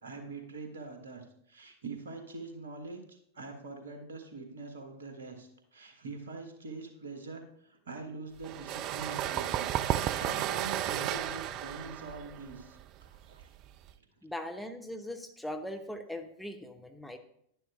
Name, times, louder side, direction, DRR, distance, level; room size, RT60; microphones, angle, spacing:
voice 1, 0.0-13.5, right 3 dB, 65° right, 5 dB, 1.4 m, -44 dB
sound 1, 8.4-13.9, right 11 dB, 40° right, 0.3 m, -33 dB
voice 2, 14.2-17.2, left 1 dB, ahead, 5 dB, 0.7 m, -40 dB
10.5 x 10.5 x 2.5 m, 0.72 s
figure-of-eight pair, 90°, 0 cm